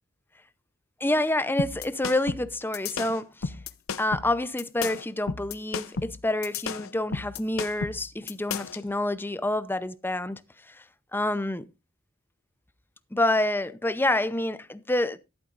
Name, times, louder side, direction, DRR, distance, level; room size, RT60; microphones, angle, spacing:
voice 1, 1.0-3.6 4.0-10.4 10.7-10.8 11.1-11.7 13.1-15.2, left 1 dB, 10° left, 0.7 m, -28 dB
sound 1, 1.6-8.8, left 5 dB, 90° left, 0.7 m, -33 dB
14.0 x 11.5 x 2.5 m
head